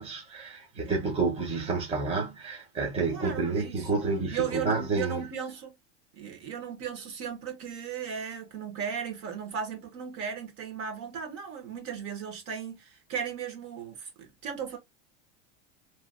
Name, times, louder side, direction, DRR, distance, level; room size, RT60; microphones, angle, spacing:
voice 1, 0.0-5.2, right 4 dB, 20° right, 1.1 m, -29 dB
voice 2, 3.1-4.0 4.3-5.8 6.2-14.8, right 7 dB, 50° right, 1.5 m, -36 dB
3.2 x 2.6 x 2.5 m
supercardioid pair, 145°, 30 cm